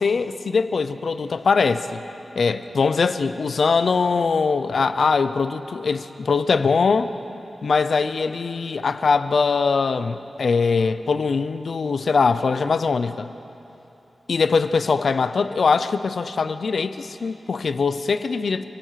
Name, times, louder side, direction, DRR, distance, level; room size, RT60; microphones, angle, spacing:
voice 1, 0.0-2.0 2.4-7.1 7.6-13.3 14.3-18.6, left 4 dB, 75° left, 11 dB, 0.7 m, -22 dB
26.5 x 17.5 x 5.8 m, 3.0 s
wide cardioid pair, 115°, 0 cm